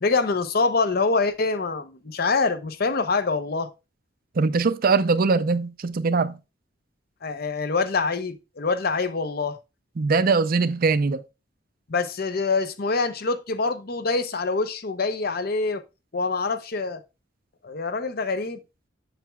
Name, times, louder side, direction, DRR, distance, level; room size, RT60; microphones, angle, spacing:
voice 1, 0.0-3.7 7.2-9.6 11.9-15.8 16.1-17.0 17.6-18.6, left 4 dB, 55° left, 0.7 m, -25 dB
voice 2, 4.4-6.4 10.0-11.2, right 4 dB, 50° right, 0.5 m, -21 dB
7.5 x 7.2 x 2.3 m
head